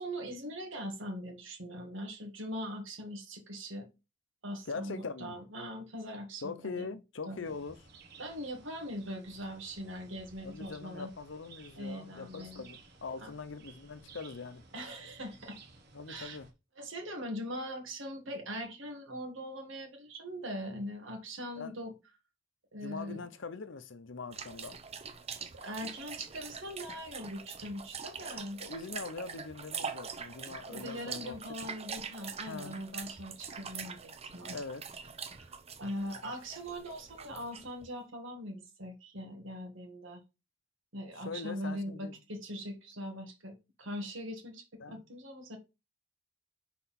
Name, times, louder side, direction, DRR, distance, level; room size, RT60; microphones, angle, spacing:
voice 1, 0.0-3.9 4.4-6.9 7.2-7.5 8.2-11.1 11.8-12.6 13.2-13.3 14.7-15.6 16.1-16.4 16.8-21.9 22.7-23.2 25.5-28.6 30.7-34.6 35.3-40.2 40.9-45.6, equal, 75° right, 1.8 m, -41 dB
voice 2, 4.7-5.4 6.4-7.7 10.4-14.6 15.9-16.5 21.6-21.8 22.8-24.8 28.2-28.3 28.6-31.4 32.5-32.8 34.5-34.8 41.2-42.2 44.8-45.0, left 4 dB, 70° left, 0.7 m, -42 dB
sound 1, 7.4-16.5, right 4 dB, 55° right, 1.3 m, -57 dB
sound 2, 24.3-37.9, right 6 dB, 30° right, 0.7 m, -44 dB
5.9 x 4.2 x 4.3 m
head